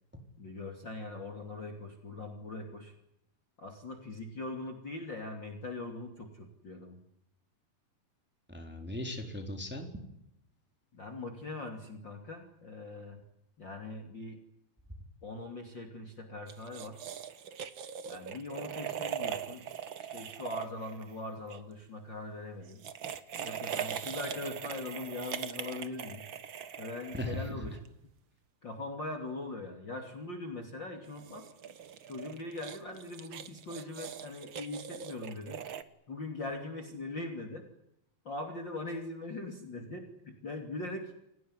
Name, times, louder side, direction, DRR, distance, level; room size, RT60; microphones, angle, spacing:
voice 1, 0.4-2.9 3.6-7.0 10.9-13.2 13.6-14.4 15.2-17.0 18.0-19.7 20.0-22.8 23.4-26.2 26.8-27.8 28.6-31.5 32.1-35.6 36.1-37.6 38.2-41.1, left 2 dB, 30° left, 4 dB, 3.1 m, -41 dB
voice 2, 8.5-9.9 27.1-27.8, left 1 dB, 5° right, 3 dB, 3.6 m, -38 dB
sound 1, 16.5-21.6 22.7-27.9 31.0-35.8, right 8 dB, 70° right, 1.1 m, -41 dB
29.0 x 18.0 x 9.8 m, 0.81 s
omnidirectional pair, 4.3 m